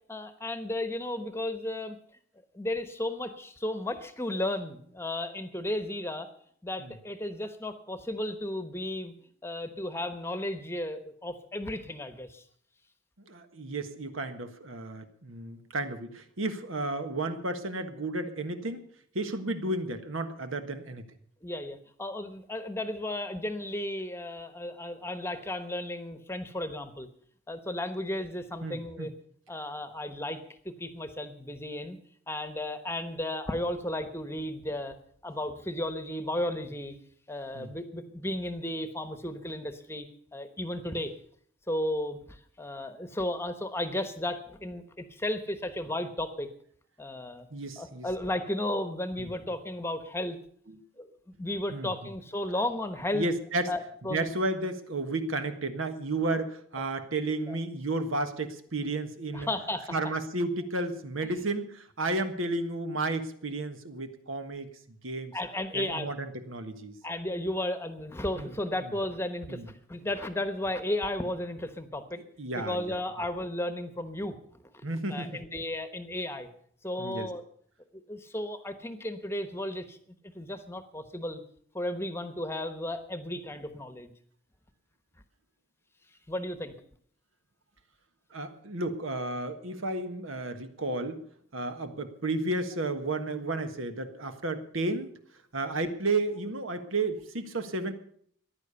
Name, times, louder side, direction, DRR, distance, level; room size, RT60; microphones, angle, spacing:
voice 1, 0.1-2.0 2.5-6.3 6.6-9.1 9.4-12.4 21.4-27.1 27.5-29.1 29.5-30.4 30.6-32.0 32.3-34.9 35.2-37.0 37.3-40.1 40.3-41.1 41.7-46.5 47.0-47.5 47.8-50.4 51.0-51.1 51.4-53.3 53.7-54.3 57.5-57.6 59.3-60.0 65.3-66.1 67.0-69.6 69.9-72.2 72.5-74.4 75.1-76.5 76.8-77.4 78.1-80.0 80.3-81.4 81.7-84.1 86.3-86.7, left 1 dB, 10° left, 10 dB, 1.0 m, -34 dB
voice 2, 13.3-18.8 19.1-21.0 28.6-29.1 37.5-37.7 47.5-48.1 49.2-49.3 50.7-50.8 51.7-51.9 53.1-53.7 54.1-59.5 59.9-65.3 65.7-66.9 68.3-68.5 69.5-69.7 72.4-72.9 74.8-75.4 77.0-77.3 88.3-91.2 91.5-95.1 95.5-97.9, right 2 dB, 80° right, 8 dB, 1.5 m, -32 dB
15.0 x 10.5 x 6.9 m, 0.62 s
head